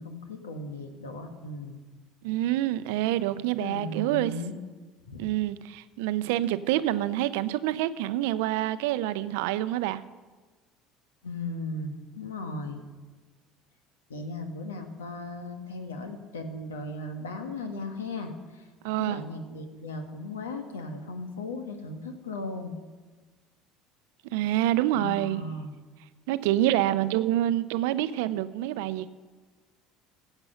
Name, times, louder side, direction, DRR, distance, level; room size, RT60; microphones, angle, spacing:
voice 1, 0.0-1.8 3.4-4.5 5.1-5.3 11.2-12.8 14.1-18.7 18.9-22.8 24.9-25.8, left 2 dB, 85° left, 6 dB, 1.3 m, -37 dB
voice 2, 2.2-4.3 5.2-10.0 18.8-19.2 24.3-25.4 26.3-29.1, right 14 dB, 75° right, 14 dB, 0.5 m, -27 dB
15.5 x 8.0 x 5.6 m, 1.3 s
hypercardioid pair, 70°, 0 cm